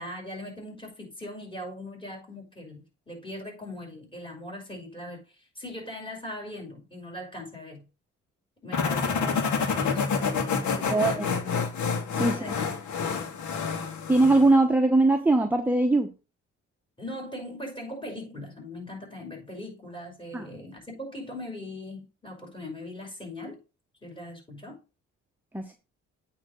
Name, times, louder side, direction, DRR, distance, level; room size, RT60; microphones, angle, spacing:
voice 1, 0.0-7.8 8.6-11.6 12.2-12.7 13.0-13.4 17.0-23.6 24.0-24.8, left 1 dB, 15° left, 5.9 m, -40 dB
sound 1, 8.7-14.5, left 5 dB, 70° left, 2.1 m, -28 dB
voice 2, 10.9-11.2 12.2-12.6 14.1-16.1 20.3-20.4 25.5-25.8, right 2 dB, 5° right, 1.0 m, -21 dB
8.7 x 3.7 x 6.5 m
cardioid pair, 90°, 30 cm